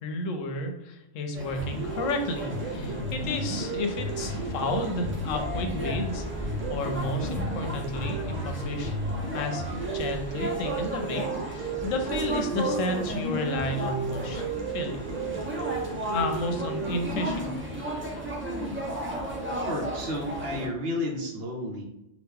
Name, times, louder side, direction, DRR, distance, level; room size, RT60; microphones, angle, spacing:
voice 1, 0.0-6.2 6.7-9.0 9.3-9.6 9.9-14.4 14.7-15.0 16.1-17.5, left 2 dB, 85° left, 5 dB, 1.0 m, -32 dB
sound 1, 1.3-20.7, right 1 dB, 15° right, 0.5 m, -35 dB
sound 2, 1.6-17.6, right 3 dB, 80° right, 1.1 m, -34 dB
voice 2, 19.6-21.8, left 1 dB, 60° right, 1 dB, 0.8 m, -32 dB
2.9 x 2.4 x 3.6 m, 0.88 s
omnidirectional pair, 1.3 m